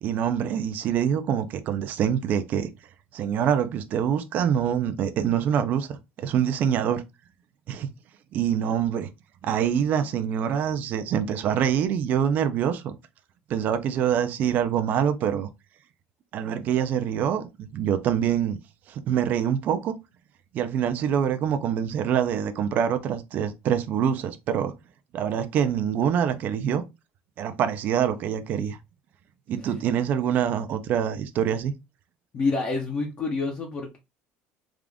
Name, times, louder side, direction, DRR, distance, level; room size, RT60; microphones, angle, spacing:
voice 1, 0.0-2.7 3.1-7.0 7.7-7.9 8.3-9.1 9.4-12.9 13.5-15.5 16.3-18.6 18.9-20.0 20.5-24.7 25.1-26.8 27.4-28.8 29.5-31.7, right 8 dB, 45° right, 0.5 m, -25 dB
voice 2, 32.3-34.0, left 3 dB, 30° left, 0.7 m, -28 dB
3.6 x 2.5 x 3.4 m
cardioid pair, 160°, 4 cm